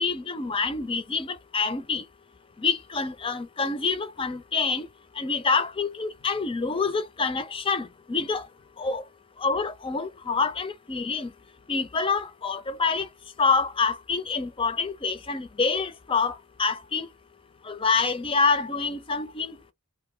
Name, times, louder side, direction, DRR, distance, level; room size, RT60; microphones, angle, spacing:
voice 1, 0.0-2.0 2.6-4.9 5.2-8.5 8.8-9.0 9.4-11.3 11.7-13.1 13.4-17.1 17.6-19.7, left 4 dB, 25° left, 0.5 m, -27 dB
2.5 x 2.1 x 3.7 m
head